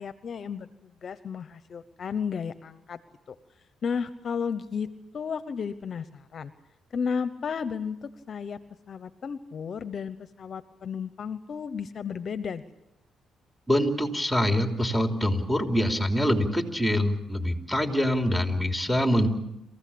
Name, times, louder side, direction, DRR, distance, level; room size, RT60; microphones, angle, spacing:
voice 1, 0.0-3.0 3.3-3.4 3.8-4.9 5.1-6.5 6.9-8.6 8.9-12.6, left 6 dB, 50° left, 13 dB, 0.9 m, -33 dB
voice 2, 13.7-19.3, equal, ahead, 4 dB, 3.2 m, -25 dB
27.5 x 15.5 x 8.6 m, 0.91 s
cardioid pair, 90°, 0 cm